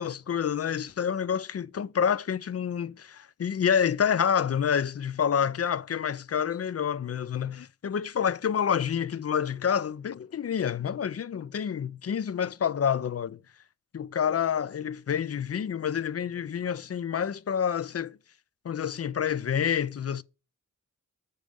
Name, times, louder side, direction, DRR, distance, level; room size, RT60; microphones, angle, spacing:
voice 1, 0.0-13.4 13.9-18.2 18.6-20.2, left 8 dB, 45° left, 0.4 m, -28 dB
6.4 x 5.2 x 6.3 m
wide cardioid pair, 120°, 33 cm